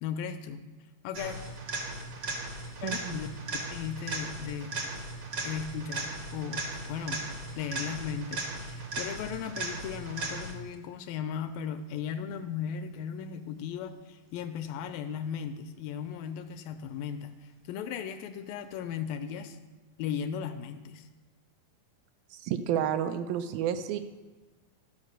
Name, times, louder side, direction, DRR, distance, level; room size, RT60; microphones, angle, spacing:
voice 1, 0.0-0.7 1.0-1.4 2.8-3.3 3.7-4.8 5.4-7.3 7.6-19.6 20.0-21.1, left 8 dB, 80° left, 9 dB, 2.2 m, -36 dB
sound 1, 1.1-10.7 18.7-18.8, right 2 dB, 65° right, 1.2 m, -37 dB
voice 2, 2.8-3.2 22.3-24.0, right 9 dB, 80° right, 9 dB, 2.2 m, -30 dB
12.0 x 5.5 x 6.5 m, 1.2 s
omnidirectional pair, 4.3 m